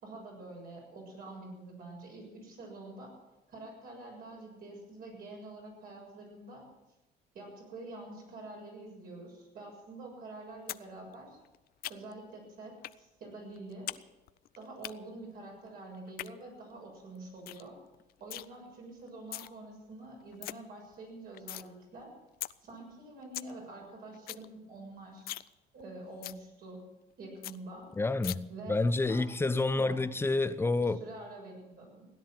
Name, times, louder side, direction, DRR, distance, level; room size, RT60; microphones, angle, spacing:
voice 1, 0.0-3.1 3.5-6.7 7.3-11.4 11.9-13.9 14.6-17.8 18.2-22.1 22.6-25.5 25.7-26.8 27.2-27.9 28.5-30.0 30.8-32.1, right 2 dB, 60° right, 7.2 m, -47 dB
sound 1, 10.7-10.8 11.1-12.3 12.8-13.0 13.3-14.0 14.3-14.9 15.9-16.3 16.8-16.9 17.1-17.2 17.5-17.7 17.9-18.5 19.1-19.5 19.9-20.0 20.2-20.5 20.9-21.7 22.0-22.1 22.4-22.5 22.9-23.0 23.2-23.5 23.8-23.9 24.1-24.5 24.8-24.9 25.2-25.5 25.8-25.9 26.2-26.4 26.8-26.9 27.1-27.2 27.4-27.6 28.2-28.4, left 14 dB, 65° left, 0.5 m, -40 dB
voice 2, 28.0-31.0, left 3 dB, 15° left, 0.7 m, -29 dB
16.5 x 10.5 x 7.6 m
cardioid pair, 110°, 17 cm